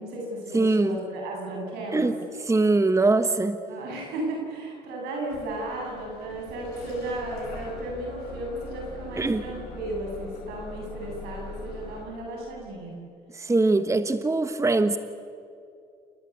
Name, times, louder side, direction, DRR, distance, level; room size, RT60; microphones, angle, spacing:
voice 1, 0.0-2.1 3.7-12.9, right 1 dB, 90° right, -1 dB, 8.0 m, -34 dB
voice 2, 0.5-1.0 1.9-2.1 2.4-3.6 9.2-9.4 13.3-15.0, right 3 dB, 20° right, 10 dB, 1.2 m, -22 dB
Bus / Engine starting, 5.3-12.0, left 3 dB, 90° left, 5.8 m, -42 dB
29.0 x 19.5 x 8.4 m, 2.5 s
supercardioid pair, 80°, 16 cm